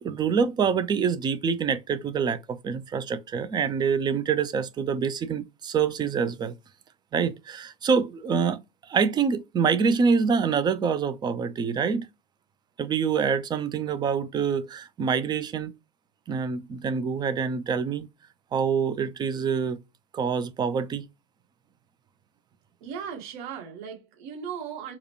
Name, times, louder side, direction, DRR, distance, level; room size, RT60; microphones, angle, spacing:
voice 1, 0.0-6.5 7.1-8.6 8.9-12.1 12.8-15.7 16.3-18.1 18.5-19.8 20.1-21.0, right 6 dB, 15° right, 0.4 m, -26 dB
voice 2, 22.8-25.0, right 7 dB, 55° right, 1.7 m, -37 dB
4.7 x 2.2 x 3.0 m
figure-of-eight pair, 95°, 29 cm